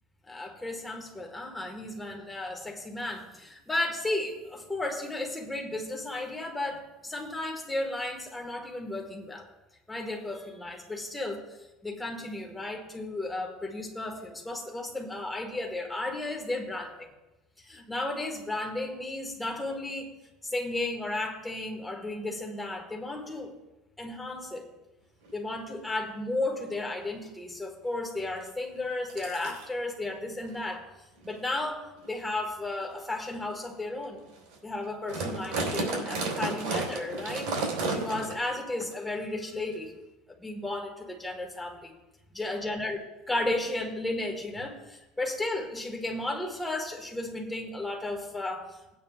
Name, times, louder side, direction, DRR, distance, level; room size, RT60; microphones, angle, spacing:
voice 1, 0.3-9.5 9.9-11.4 11.8-17.1 17.6-20.1 20.4-23.5 24.0-24.7 25.3-30.8 31.2-34.2 34.6-37.5 37.9-39.9 40.4-42.0 42.3-49.0, left 2 dB, 5° left, 1 dB, 1.6 m, -34 dB
sound 1, 25.2-25.3 25.8-26.0 26.6-26.7 27.0-27.3 28.4-28.5 29.1-29.7 30.4-30.6 31.2-31.4 32.0-32.1 32.8-32.9 33.5-33.6 34.0-34.1 34.3-34.6 34.8-38.5 38.8-38.9 39.7-39.8, right 3 dB, 85° right, 3.6 m, -32 dB
19.0 x 9.1 x 2.4 m, 1.0 s
cardioid pair, 150°, 0 cm